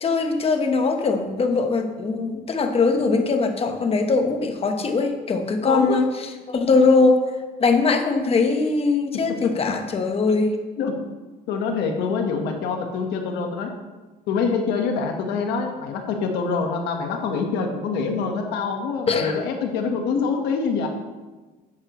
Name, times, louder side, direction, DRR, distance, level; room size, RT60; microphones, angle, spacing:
voice 1, 0.0-6.1 6.5-7.2 7.6-10.5 19.1-19.4 20.1-20.3, left 4 dB, 35° left, 6 dB, 1.2 m, -21 dB
voice 2, 5.6-6.0 9.3-9.5 10.8-10.9 11.5-13.7 14.3-20.9, left 5 dB, 85° left, 3 dB, 1.4 m, -25 dB
11.5 x 8.7 x 3.1 m, 1.2 s
cardioid pair, 110°, 17 cm